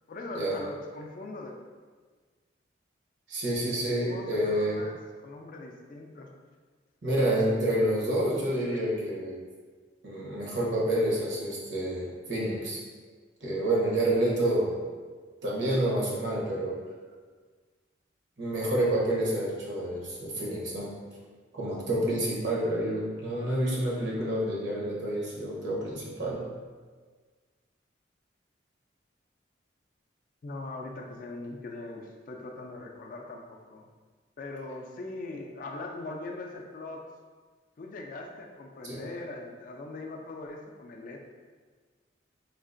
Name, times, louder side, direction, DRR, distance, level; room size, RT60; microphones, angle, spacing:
voice 1, 0.1-1.6 4.1-5.0 5.2-6.3 30.4-33.8 34.4-37.0 37.8-41.3, left 2 dB, 45° left, 1 dB, 0.3 m, -41 dB
voice 2, 3.3-4.8 7.0-9.4 10.0-12.8 13.4-14.8 15.4-16.8 18.4-20.9 21.5-26.4 38.8-39.0, right 1 dB, 65° right, -4 dB, 0.8 m, -28 dB
3.6 x 2.4 x 2.5 m, 1.5 s
head